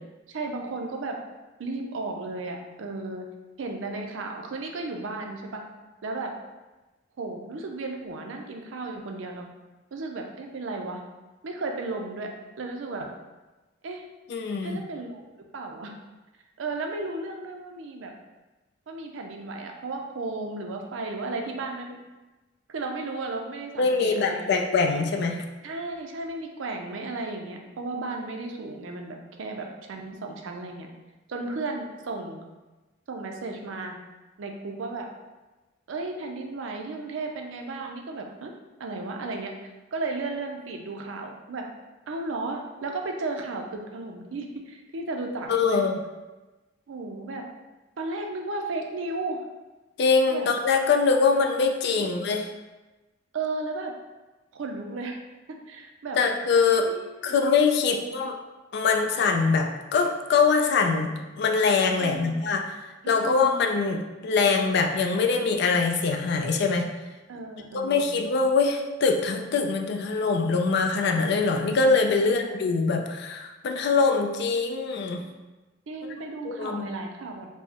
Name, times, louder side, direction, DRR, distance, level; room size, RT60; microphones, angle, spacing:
voice 1, 0.3-1.2 1.6-3.3 3.6-5.6 6.0-6.3 7.2-9.5 9.9-11.0 11.4-12.3 12.6-13.1 13.8-14.0 14.6-15.9 16.6-18.1 18.9-22.0 22.7-24.6 25.6-30.9 31.3-32.4 33.1-34.0 34.4-35.1 35.9-38.5 38.8-41.7 42.1-45.8 46.9-47.4 48.0-49.4 50.3-50.5 51.8-52.1 53.3-53.9 54.5-55.2 55.5-56.2 56.9-57.4 57.9-58.2 62.0-62.3 63.0-63.6 67.3-68.1 72.3-72.6 75.9-77.5, right 3 dB, 80° right, 2 dB, 0.5 m, -34 dB
voice 2, 14.3-14.8 23.8-25.4 45.5-46.0 50.0-52.5 56.2-56.9 57.2-58.3 58.7-62.7 63.1-66.9 67.7-75.2 76.4-76.9, left 4 dB, 60° left, 4 dB, 0.4 m, -23 dB
4.5 x 2.1 x 2.9 m, 1.1 s
head